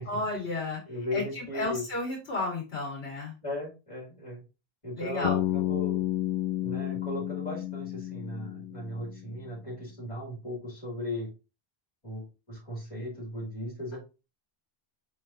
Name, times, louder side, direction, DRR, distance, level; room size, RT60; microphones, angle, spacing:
voice 1, 0.1-0.8 1.1-3.3 5.0-5.3, left 2 dB, 85° left, -1 dB, 2.1 m, -32 dB
voice 2, 0.9-1.8 3.4-4.4 4.8-6.0 6.6-11.3 12.0-14.0, left 1 dB, 30° left, -3 dB, 2.8 m, -37 dB
Bass guitar, 5.2-9.3, left 13 dB, 55° left, 0.6 m, -31 dB
5.0 x 3.8 x 2.7 m, 0.29 s
omnidirectional pair, 1.0 m